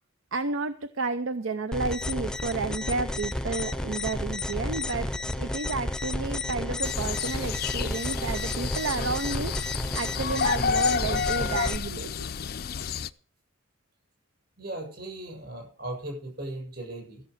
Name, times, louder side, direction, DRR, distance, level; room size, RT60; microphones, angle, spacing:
voice 1, 0.3-5.1 5.4-12.3, right 3 dB, 75° right, 11 dB, 0.7 m, -31 dB
sound 1, 1.7-11.8, left 1 dB, 5° left, 0.6 m, -31 dB
sound 2, 6.8-13.1, left 6 dB, 50° left, 0.5 m, -30 dB
voice 2, 14.6-17.2, right 1 dB, 50° right, 0 dB, 7.6 m, -37 dB
14.5 x 7.3 x 6.5 m, 0.42 s
head